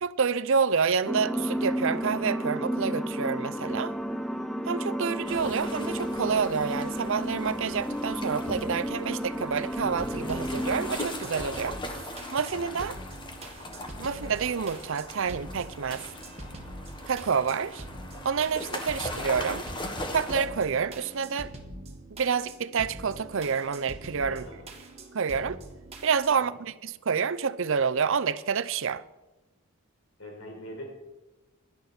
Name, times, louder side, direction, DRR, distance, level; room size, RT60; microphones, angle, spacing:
voice 1, 0.0-3.9 4.7-11.8 12.3-13.0 14.0-16.0 17.1-17.8 18.2-19.6 20.1-21.5 22.1-24.5 25.1-25.6 26.0-29.0, right 6 dB, 60° right, 0.6 m, -28 dB
sound 1, 1.1-11.0, equal, ahead, 0.5 m, -32 dB
sound 2, 5.3-20.5, left 1 dB, 20° left, 1.4 m, -40 dB
sound 3, 9.8-26.3, right 1 dB, 30° right, 1.8 m, -44 dB
voice 2, 24.3-24.7 30.2-30.9, equal, 65° left, 4.5 m, -42 dB
17.0 x 11.5 x 4.4 m
head